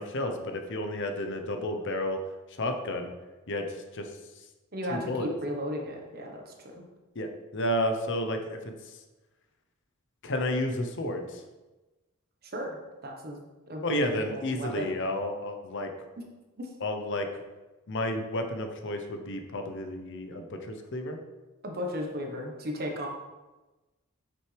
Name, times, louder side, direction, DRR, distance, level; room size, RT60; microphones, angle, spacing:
voice 1, 0.0-2.2 2.6-3.1 3.5-4.1 4.9-5.3 7.1-8.6 10.2-11.4 13.8-15.9 16.8-17.3 17.9-21.2, left 1 dB, 55° left, 5 dB, 0.8 m, -31 dB
voice 2, 4.7-6.8 12.5-13.4 13.7-15.0 16.6-16.7 21.6-23.1, equal, 45° right, 1 dB, 1.2 m, -35 dB
7.8 x 6.1 x 3.4 m, 1.1 s
head